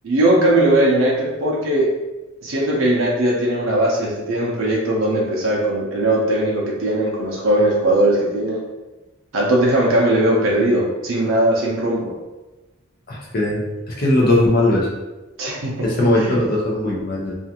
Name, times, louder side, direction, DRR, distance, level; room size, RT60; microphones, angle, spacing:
voice 1, 0.0-1.9 2.4-8.6 9.3-12.1 15.4-16.4, right 1 dB, 70° right, -3 dB, 0.5 m, -19 dB
voice 2, 13.1-13.6 13.9-14.9 15.8-17.3, left 1 dB, 45° left, -3 dB, 0.6 m, -19 dB
2.4 x 2.4 x 2.8 m, 1.1 s
head